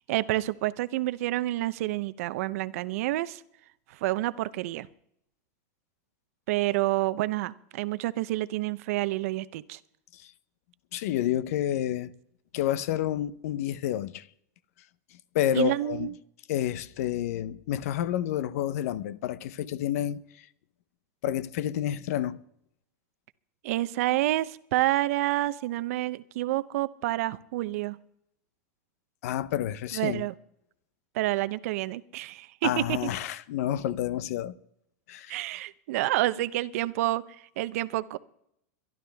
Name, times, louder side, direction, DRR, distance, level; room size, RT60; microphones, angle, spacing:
voice 1, 0.1-3.4 3.9-4.9 6.5-9.8 15.5-16.1 23.6-28.0 29.9-30.3 31.1-33.0 35.3-37.2 37.6-38.2, right 16 dB, 65° right, 0.8 m, -28 dB
voice 2, 10.9-12.1 12.5-14.3 15.3-16.1 16.5-20.5 21.2-22.4 29.2-30.3 32.6-34.6 35.1-35.4, left 11 dB, 65° left, 0.8 m, -29 dB
23.0 x 12.0 x 3.5 m
supercardioid pair, 140°, 9 cm